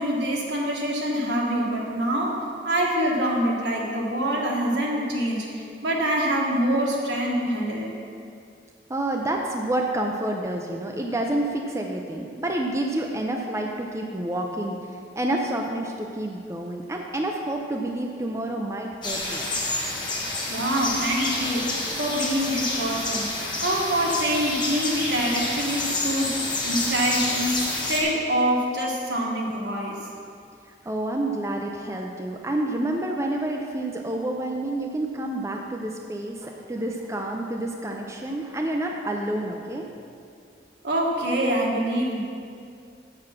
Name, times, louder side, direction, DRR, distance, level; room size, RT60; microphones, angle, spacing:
voice 1, 0.0-2.4 2.6-7.9 20.5-30.0 40.8-42.2, right 1 dB, 80° right, -3 dB, 1.6 m, -25 dB
voice 2, 8.9-14.8 15.2-19.5 30.7-39.9, right 1 dB, 15° right, 1 dB, 0.5 m, -29 dB
sound 1, 19.0-28.0, left 2 dB, 25° left, 1.3 m, -28 dB
7.3 x 6.8 x 5.9 m, 2.4 s
head